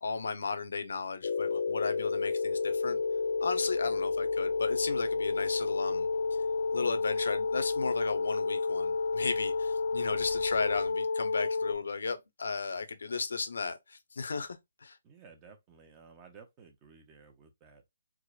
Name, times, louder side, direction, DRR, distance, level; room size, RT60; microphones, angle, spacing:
voice 1, 0.0-3.0 3.4-6.1 6.7-15.0, left 4 dB, 80° left, 0.7 m, -35 dB
sound 1, 1.2-11.7, left 4 dB, 55° left, 0.4 m, -30 dB
voice 2, 15.0-17.8, right 5 dB, 15° right, 0.5 m, -55 dB
4.7 x 2.1 x 2.4 m
hypercardioid pair, 175°, 0 cm